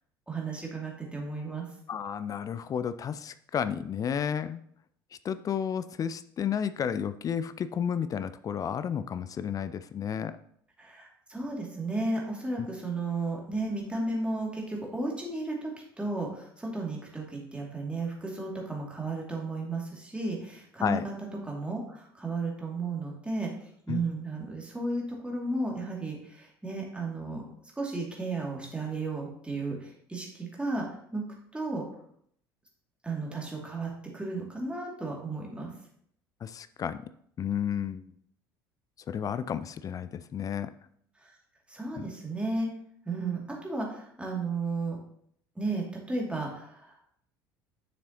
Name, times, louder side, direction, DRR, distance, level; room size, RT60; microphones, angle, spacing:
voice 1, 0.3-1.6 10.8-15.7 16.0-21.1 21.4-23.5 23.9-27.5 27.8-30.8 31.1-31.2 31.5-31.8 33.0-35.7 41.2-41.4 41.7-42.7 43.1-45.0 45.6-47.0, right 2 dB, 10° right, -2 dB, 2.5 m, -34 dB
voice 2, 1.9-4.6 5.2-10.3 20.8-21.1 23.9-24.0 36.4-37.0 37.4-38.0 39.1-40.7 42.0-42.1, left 8 dB, 30° left, 13 dB, 0.4 m, -32 dB
9.4 x 6.8 x 2.9 m, 0.67 s
figure-of-eight pair, 60°, 12 cm